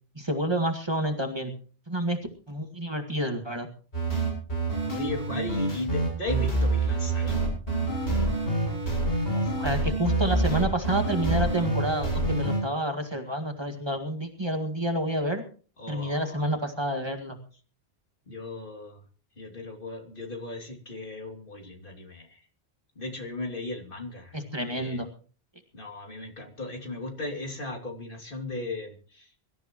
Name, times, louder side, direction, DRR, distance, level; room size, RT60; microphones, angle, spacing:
voice 1, 0.2-1.5 1.9-2.2 2.5-3.7 9.3-15.4 15.9-17.4 24.3-25.1, right 1 dB, 25° right, 5 dB, 1.9 m, -29 dB
sound 1, 3.9-12.6, right 2 dB, 85° left, 7.8 m, -26 dB
voice 2, 4.9-7.4 15.8-16.5 18.3-19.0 19.4-22.4 23.0-24.4 24.7-25.0 25.7-29.3, left 2 dB, 55° left, 2 dB, 3.1 m, -36 dB
24.0 x 13.5 x 3.0 m, 0.40 s
omnidirectional pair, 1.1 m